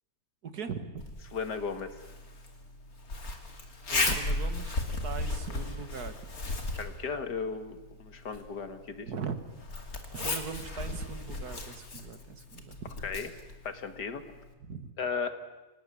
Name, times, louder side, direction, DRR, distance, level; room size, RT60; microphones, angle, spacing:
voice 1, 0.4-1.1 3.9-6.2 9.1-9.3 10.1-12.9 14.7-14.9, right 6 dB, 70° right, 10 dB, 2.2 m, -40 dB
Zipper (clothing), 1.0-14.5, left 2 dB, 60° left, 3.0 m, -36 dB
voice 2, 1.3-2.0 6.8-9.1 13.0-13.3 13.6-14.2 15.0-15.4, left 5 dB, 85° left, 9 dB, 2.4 m, -35 dB
27.0 x 18.5 x 9.8 m, 1.1 s
omnidirectional pair, 1.7 m